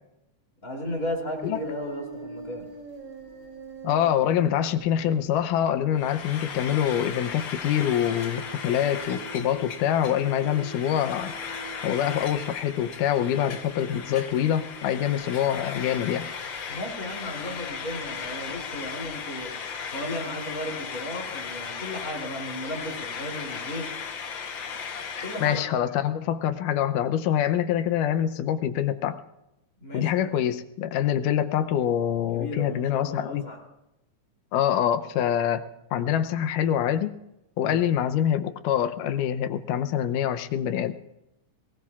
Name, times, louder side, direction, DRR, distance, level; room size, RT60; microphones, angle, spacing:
voice 1, 0.6-2.7 16.7-19.6 19.9-23.9 25.2-25.9 29.8-30.1 32.3-33.6 37.6-37.9, left 1 dB, 25° left, 0 dB, 3.4 m, -35 dB
sound 1, 0.8-19.7, right 5 dB, 35° right, 3.6 m, -46 dB
voice 2, 3.8-11.3 11.8-16.3 25.4-29.2 29.9-33.4 34.5-37.1 37.6-41.0, left 10 dB, 85° left, 10 dB, 2.3 m, -25 dB
Frying (food), 5.9-25.7, left 6 dB, 65° left, 1.2 m, -37 dB
22.5 x 19.0 x 2.4 m, 0.90 s
omnidirectional pair, 3.6 m